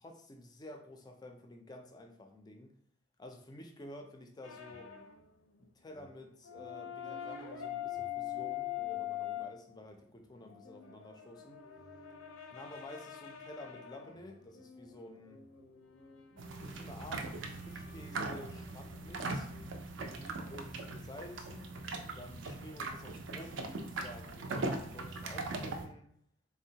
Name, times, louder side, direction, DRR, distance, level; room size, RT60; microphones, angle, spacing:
voice 1, 0.0-2.7 3.2-4.9 5.6-11.6 12.5-15.4 16.6-19.5 20.0-21.7 22.2-26.1, left 1 dB, 20° left, 4 dB, 0.3 m, -51 dB
sound 1, 4.4-5.2 5.5-5.7 5.9-9.5 10.3-19.7, left 11 dB, 85° left, 0.5 m, -44 dB
sound 2, 16.4-25.9, right 3 dB, 65° right, 0.4 m, -40 dB
3.6 x 2.0 x 2.7 m, 0.67 s
head